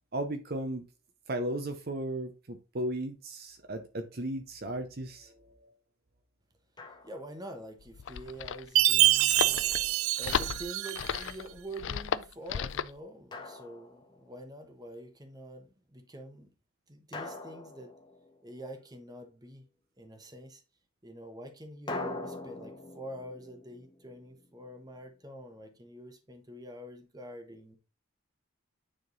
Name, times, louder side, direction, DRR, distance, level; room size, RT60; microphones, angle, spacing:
voice 1, 0.1-0.8 1.3-5.7, right 1 dB, 45° right, 0.7 m, -35 dB
Drum, 6.8-7.5 9.4-10.5 13.3-14.5 17.1-18.8 21.9-24.8, left 2 dB, 20° left, 1.0 m, -43 dB
voice 2, 7.0-16.5 16.9-17.9 18.4-19.6 20.0-20.6 21.0-27.8, right 1 dB, 20° right, 1.1 m, -46 dB
sound 1, 7.8-13.0, left 7 dB, 60° left, 0.4 m, -35 dB
Chime, 8.8-11.2, right 16 dB, 75° right, 0.4 m, -25 dB
9.5 x 3.7 x 3.9 m
head